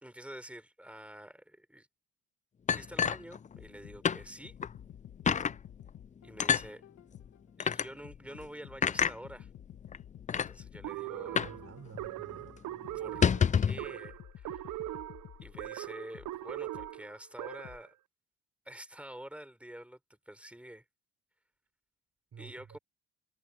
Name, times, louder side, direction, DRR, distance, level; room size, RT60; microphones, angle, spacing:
voice 1, 0.0-1.9 2.7-4.5 6.2-6.8 7.6-9.5 10.3-11.6 12.9-13.2 13.6-14.6 15.4-17.9 18.7-20.8 22.4-22.8, right 1 dB, 5° right, 3.8 m, -48 dB
sound 1, 2.7-3.8 4.0-4.2 4.6-4.7 5.3-5.6 6.4-6.7 7.6-7.9 8.8-9.2 9.9-10.0 10.3-10.5 11.4-11.6 11.9-12.0 12.3-12.5 13.0-13.8, left 7 dB, 25° left, 0.4 m, -27 dB
sound 2, 3.5-7.5 8.0-12.3 12.8-17.1 17.6-17.8, left 11 dB, 65° left, 1.8 m, -52 dB
sound 3, 10.8-17.9, right 15 dB, 80° right, 0.9 m, -41 dB
voice 2, 11.4-12.6 22.3-22.8, right 7 dB, 50° right, 6.3 m, -51 dB
cardioid pair, 90°, 30 cm